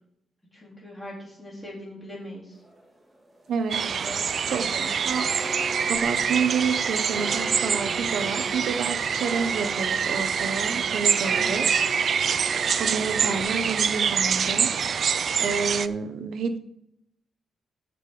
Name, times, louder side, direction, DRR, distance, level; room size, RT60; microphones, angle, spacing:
voice 1, 0.5-2.6 3.8-4.8 11.3-11.6, left 1 dB, 10° left, -5 dB, 3.9 m, -41 dB
sound 1, 2.5-13.4, equal, 10° right, 2.1 m, -40 dB
voice 2, 3.5-3.8 4.5-5.3 5.9-12.1 12.8-14.7 15.4-16.6, right 5 dB, 70° right, 9 dB, 1.1 m, -29 dB
sound 2, 3.7-15.9, right 7 dB, 45° right, 0.4 m, -25 dB
14.0 x 5.3 x 5.0 m, 0.76 s
wide cardioid pair, 175°, 0 cm